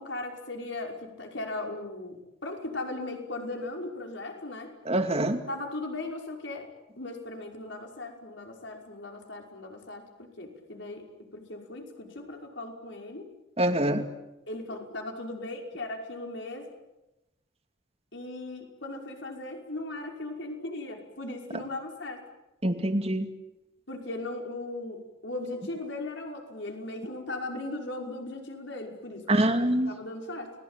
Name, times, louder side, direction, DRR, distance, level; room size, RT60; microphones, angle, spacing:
voice 1, 0.0-4.7 5.5-6.7 7.0-10.0 10.4-11.0 11.3-13.3 14.5-16.7 18.1-22.2 23.9-30.5, left 2 dB, 70° left, 2 dB, 5.5 m, -38 dB
voice 2, 4.9-5.4 13.6-14.0 22.6-23.3 29.3-29.9, right 1 dB, 30° right, 6 dB, 2.4 m, -25 dB
29.5 x 21.0 x 9.1 m, 0.97 s
head